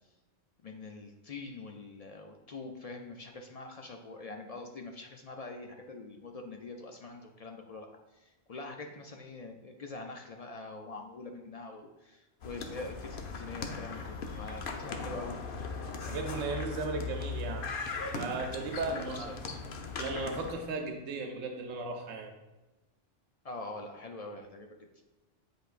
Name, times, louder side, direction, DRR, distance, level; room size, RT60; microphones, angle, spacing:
voice 1, 0.6-7.9 8.1-15.4 18.9-19.6 23.4-24.9, left 3 dB, 70° left, 3 dB, 0.3 m, -44 dB
sound 1, 12.4-20.5, left 4 dB, 55° left, 0.7 m, -39 dB
voice 2, 16.1-19.3 20.0-22.3, right 3 dB, 85° right, 3 dB, 1.0 m, -36 dB
7.9 x 5.0 x 2.5 m, 1.1 s
omnidirectional pair, 1.3 m